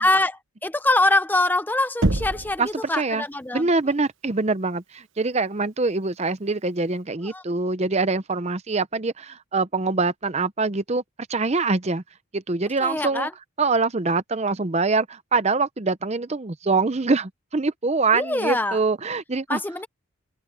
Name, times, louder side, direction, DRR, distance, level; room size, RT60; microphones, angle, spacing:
voice 1, 0.0-3.7 7.2-7.4 12.8-13.3 18.1-18.8 19.5-19.9, left 2 dB, 10° left, 0.6 m, -24 dB
Knock, 2.0-2.7, right 2 dB, 60° right, 1.2 m, -23 dB
voice 2, 2.9-3.2 3.5-11.0 11.3-12.0 12.3-13.3 13.6-19.6, right 3 dB, 30° right, 0.7 m, -24 dB
head